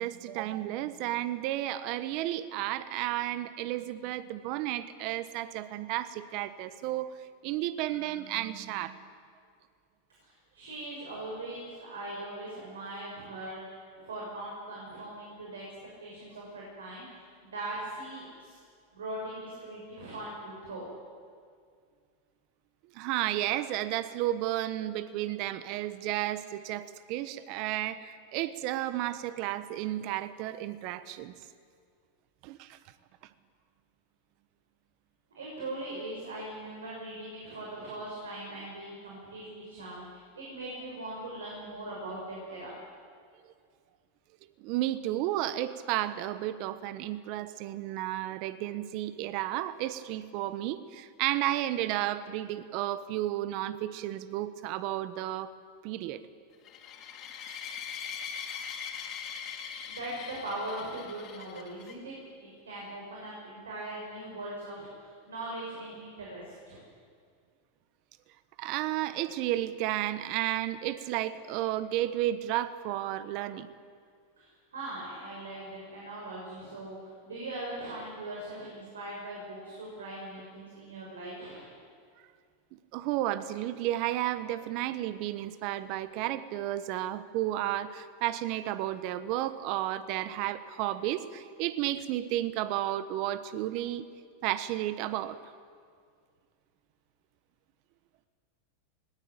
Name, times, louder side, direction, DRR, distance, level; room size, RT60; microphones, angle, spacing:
voice 1, 0.0-7.1 7.4-9.1 22.9-31.3 32.4-32.8 44.6-55.5 55.8-56.2 68.6-73.7 82.7-94.1 94.4-95.5, right 14 dB, 55° right, 14 dB, 1.2 m, -32 dB
voice 2, 10.2-15.6 16.0-17.2 17.5-18.6 18.9-20.9 35.3-42.7 59.8-66.8 74.4-81.7, right 1 dB, 90° right, -3 dB, 6.5 m, -40 dB
sound 1, 56.6-61.9, left 7 dB, 45° left, 3.6 m, -41 dB
20.0 x 18.5 x 9.1 m, 2.1 s
hypercardioid pair, 105°, 0 cm